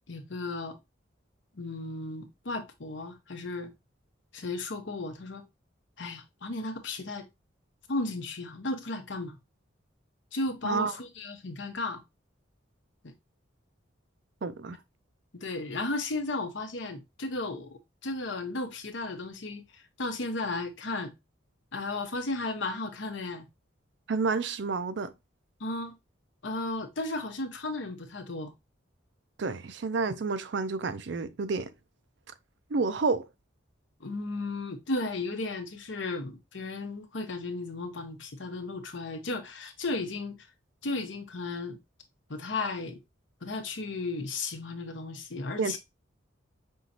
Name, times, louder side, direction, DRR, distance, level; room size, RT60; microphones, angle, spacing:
voice 1, 0.1-0.8 1.5-3.7 4.3-5.4 6.0-7.3 7.9-9.4 10.3-12.0 13.0-13.1 15.3-21.1 21.7-23.5 25.6-26.0 26.4-28.5 34.0-40.5 40.8-41.8 42.3-43.0 43.4-45.8, left 2 dB, 70° left, 0.9 m, -34 dB
voice 2, 14.4-14.8 24.1-25.1 29.4-31.7 32.7-33.3 45.6-45.7, right 4 dB, 60° right, 0.5 m, -29 dB
5.5 x 3.0 x 2.7 m
head